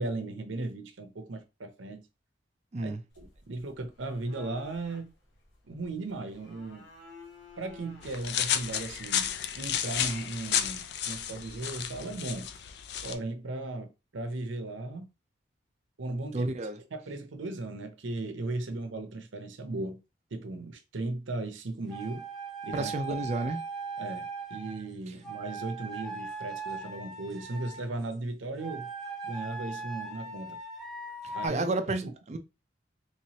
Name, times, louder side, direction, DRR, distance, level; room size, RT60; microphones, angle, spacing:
voice 1, 0.0-2.0 2.8-5.1 5.7-6.9 7.6-12.5 13.0-15.1 16.0-16.6 16.9-20.0 20.3-22.3 22.6-22.9 24.0-28.9 29.2-30.6 31.3-31.7 32.0-32.1, right 2 dB, 85° right, 0.7 m, -37 dB
sound 1, 3.1-9.1, left 3 dB, 75° left, 0.9 m, -53 dB
sound 2, 8.0-13.1, left 9 dB, 60° left, 0.4 m, -32 dB
voice 2, 16.3-16.8 22.7-23.6 31.2-32.4, right 2 dB, 35° right, 0.4 m, -31 dB
sound 3, 21.9-24.8 25.2-27.9 28.6-31.5, right 3 dB, ahead, 0.7 m, -39 dB
3.3 x 3.1 x 2.8 m
head